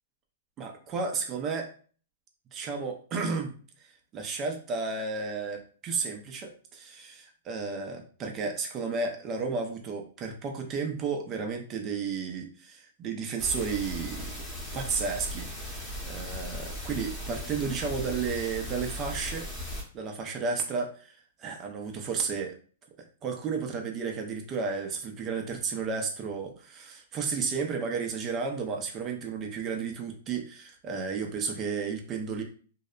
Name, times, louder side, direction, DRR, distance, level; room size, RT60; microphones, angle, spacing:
voice 1, 0.6-1.7 2.5-3.5 4.1-14.4 14.7-22.5 23.0-32.4, right 5 dB, 30° right, 3 dB, 0.5 m, -33 dB
sound 1, 13.4-19.8, left 1 dB, 5° left, 0.9 m, -37 dB
2.7 x 2.1 x 2.4 m, 0.40 s
hypercardioid pair, 135°, 0 cm